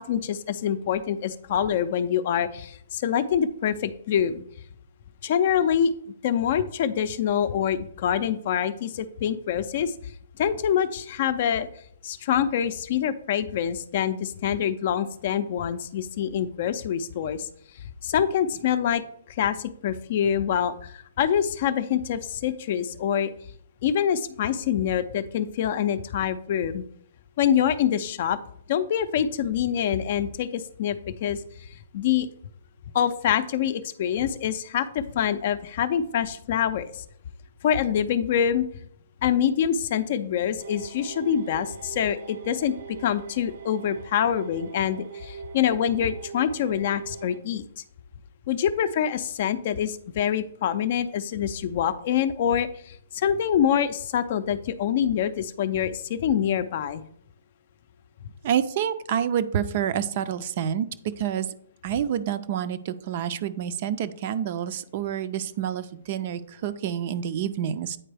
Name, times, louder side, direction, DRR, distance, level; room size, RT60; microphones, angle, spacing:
voice 1, 0.0-4.4 5.2-5.9 6.2-9.9 10.4-11.7 12.0-17.5 18.0-19.0 19.3-23.3 23.8-26.8 27.4-28.4 28.7-31.7 31.9-32.3 32.9-37.0 37.6-38.6 39.2-47.6 48.5-57.0, left 9 dB, 45° left, 12 dB, 0.4 m, -25 dB
sound 1, 40.6-47.4, right 6 dB, 70° right, 0.8 m, -42 dB
voice 2, 58.4-60.9 61.2-61.5 61.8-68.0, right 9 dB, 40° right, 13 dB, 0.4 m, -28 dB
8.6 x 4.4 x 3.4 m, 0.66 s
hypercardioid pair, 160°, 0 cm